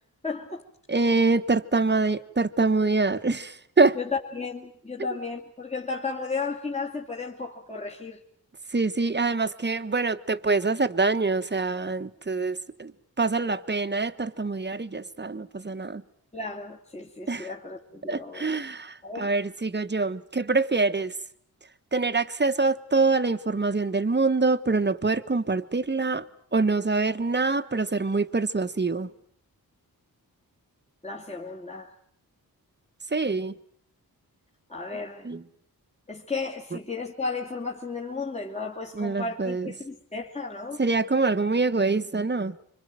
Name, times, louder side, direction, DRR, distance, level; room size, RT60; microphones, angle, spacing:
voice 1, 0.2-0.6 4.0-8.2 16.3-18.6 19.0-19.3 31.0-31.9 34.7-35.3 36.1-40.8, left 4 dB, 20° left, 2.5 m, -34 dB
voice 2, 0.9-4.0 8.7-16.0 17.3-17.5 18.1-21.2 21.9-26.3 26.5-29.1 33.1-33.5 35.2-35.4 38.9-39.7 40.8-42.6, right 3 dB, 30° right, 1.4 m, -25 dB
26.0 x 25.5 x 7.7 m
wide cardioid pair, 110°, 37 cm